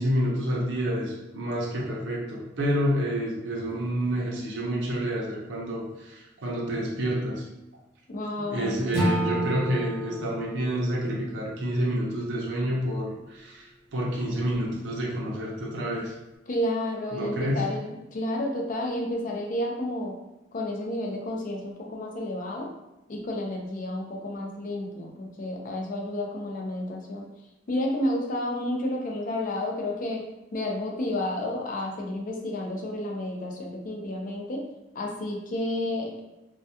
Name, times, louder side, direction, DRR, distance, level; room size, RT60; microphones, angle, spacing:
voice 1, 0.0-7.4 8.4-16.1 17.1-17.6, equal, 70° right, -3 dB, 0.5 m, -29 dB
voice 2, 8.1-8.8 16.5-20.2 20.5-22.7 23.1-27.3 27.7-30.3 30.5-34.6 34.9-36.2, left 1 dB, 45° left, 1 dB, 0.4 m, -31 dB
Acoustic guitar / Strum, 8.9-12.1, equal, 30° left, 0.9 m, -30 dB
2.2 x 2.2 x 2.7 m, 0.98 s
head